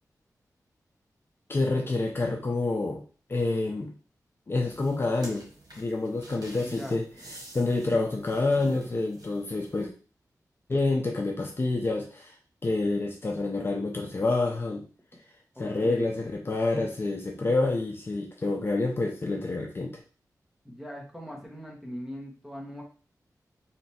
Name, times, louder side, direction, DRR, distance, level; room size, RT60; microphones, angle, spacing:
voice 1, 1.5-3.0 3.3-3.9 4.5-5.5 5.8-7.0 7.5-9.9 10.7-12.3 12.6-14.8 15.6-19.9, left 2 dB, 35° left, 1 dB, 0.6 m, -28 dB
sound 1, 4.6-9.8, right 1 dB, 85° right, 1.3 m, -49 dB
voice 2, 6.6-7.0 15.5-16.1 20.6-22.8, equal, 5° right, -1 dB, 1.2 m, -40 dB
3.3 x 2.9 x 4.2 m, 0.37 s
wide cardioid pair, 125°, 7 cm